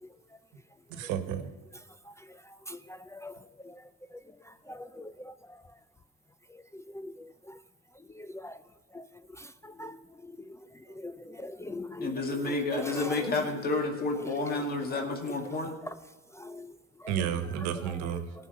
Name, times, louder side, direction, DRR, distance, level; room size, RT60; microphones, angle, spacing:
voice 1, 0.9-1.5 10.9-11.1 17.1-18.3, right 9 dB, 90° right, 9 dB, 1.3 m, -32 dB
voice 2, 4.7-5.3 7.0-7.1 8.2-8.6 8.9-9.0 9.6-10.0 11.0-12.1 12.7-13.1 16.4-16.7, left 1 dB, 10° left, 12 dB, 0.3 m, -40 dB
voice 3, 12.0-15.8, left 3 dB, 35° left, 2 dB, 2.1 m, -30 dB
17.5 x 6.1 x 5.5 m, 1.3 s
cardioid pair, 115°, 29 cm